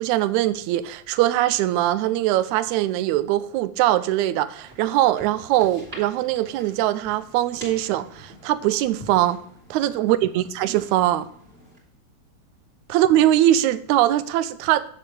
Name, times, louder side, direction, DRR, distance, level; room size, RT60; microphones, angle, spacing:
voice 1, 0.0-9.4 9.7-11.3 12.9-14.9, right 13 dB, 80° right, 1.8 m, -21 dB
sound 1, 4.6-11.8, equal, 20° right, 2.7 m, -46 dB
7.8 x 7.5 x 3.3 m
omnidirectional pair, 3.6 m